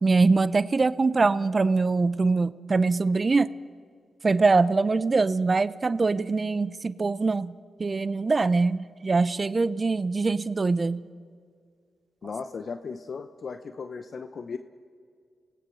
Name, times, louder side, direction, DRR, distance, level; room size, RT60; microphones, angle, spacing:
voice 1, 0.0-3.5 4.2-11.1, right 3 dB, 40° right, 17 dB, 0.6 m, -23 dB
voice 2, 12.2-14.6, left 5 dB, 60° left, 10 dB, 0.8 m, -36 dB
27.0 x 18.5 x 6.4 m, 2.1 s
cardioid pair, 60°, 0 cm